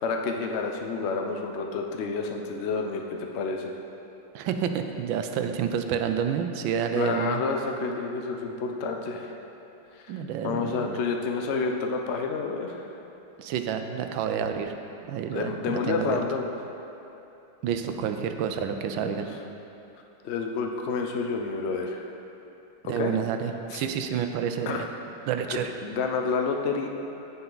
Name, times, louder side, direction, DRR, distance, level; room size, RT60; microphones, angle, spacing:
voice 1, 0.0-3.7 6.9-9.3 9.9-10.0 10.4-12.9 15.3-16.5 19.0-19.2 20.2-22.0 22.8-23.1 23.7-23.8 24.7-24.9 25.8-26.9, left 4 dB, 80° left, 3 dB, 0.6 m, -29 dB
voice 2, 4.3-7.4 10.1-11.0 13.4-14.8 15.1-16.2 17.6-19.3 22.8-24.9 25.3-25.7, right 8 dB, 75° right, 7 dB, 1.3 m, -29 dB
15.0 x 5.7 x 3.9 m, 2.9 s
omnidirectional pair, 2.2 m